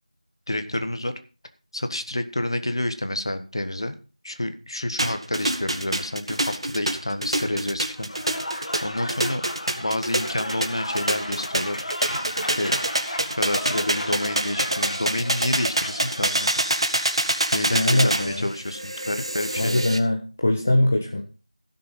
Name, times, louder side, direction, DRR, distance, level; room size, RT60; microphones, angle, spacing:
voice 1, 0.5-1.1 1.7-4.0 4.2-8.1 8.8-9.4 9.8-11.8 12.5-12.7 13.3-16.5 17.5-19.8, left 1 dB, 40° left, 9 dB, 1.4 m, -29 dB
sound 1, 5.0-20.0, right 1 dB, 45° right, 1.7 m, -26 dB
Applause / Crowd, 8.0-16.8, left 1 dB, 60° left, 2.5 m, -35 dB
voice 2, 17.7-18.5 19.6-21.2, left 1 dB, 15° left, 2 dB, 0.7 m, -22 dB
16.0 x 6.6 x 5.3 m, 0.35 s
figure-of-eight pair, 175°, 4 cm